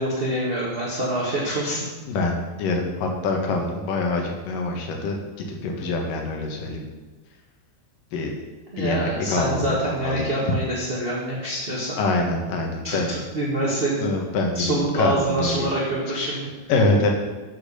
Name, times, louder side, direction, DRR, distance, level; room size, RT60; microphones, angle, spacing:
voice 1, 0.0-1.8 8.7-12.0 12.8-14.1 14.5-16.5, right 1 dB, 25° right, -6 dB, 1.3 m, -26 dB
voice 2, 2.1-6.8 8.1-8.3 8.8-9.6 10.0-10.4 12.0-13.2 14.0-14.6 14.9-15.7 16.2-16.3 16.7-17.1, left 2 dB, 85° left, 2 dB, 3.2 m, -25 dB
9.5 x 6.2 x 6.8 m, 1.2 s
omnidirectional pair, 3.7 m